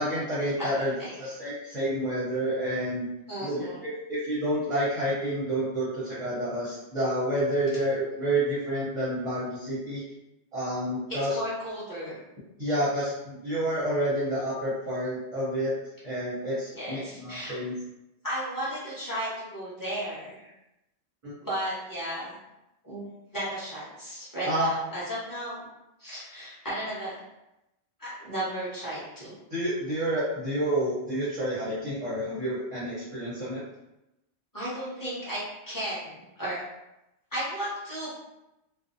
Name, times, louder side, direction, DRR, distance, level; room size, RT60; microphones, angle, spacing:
voice 1, 0.0-3.1 3.4-10.0 10.5-11.3 12.6-15.7 16.0-17.7 21.2-21.3 24.4-24.7 29.5-33.6, right 1 dB, 35° right, -9 dB, 0.7 m, -29 dB
voice 2, 0.6-1.1 3.3-3.8 11.3-12.2 16.7-17.6 18.2-20.5 21.4-22.4 22.8-23.0 23.3-25.7 26.0-27.2 28.0-29.3 34.5-36.6 37.3-38.1, right 1 dB, 20° left, -10 dB, 1.0 m, -34 dB
2.6 x 2.0 x 2.5 m, 0.91 s
omnidirectional pair, 1.2 m